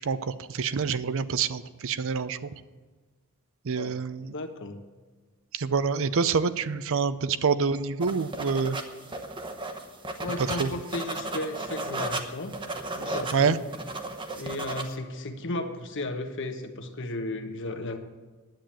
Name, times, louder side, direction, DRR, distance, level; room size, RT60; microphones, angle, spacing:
voice 1, 0.0-2.5 3.6-4.3 5.5-8.8 10.6-10.7 13.3-13.6, right 5 dB, 65° right, 14 dB, 0.5 m, -26 dB
voice 2, 3.7-4.8 10.2-12.5 13.0-13.6 14.3-18.0, left 2 dB, 55° left, 6 dB, 1.1 m, -34 dB
sound 1, 8.0-14.9, right 2 dB, 20° right, 0.9 m, -35 dB
10.5 x 8.7 x 7.5 m, 1.3 s
head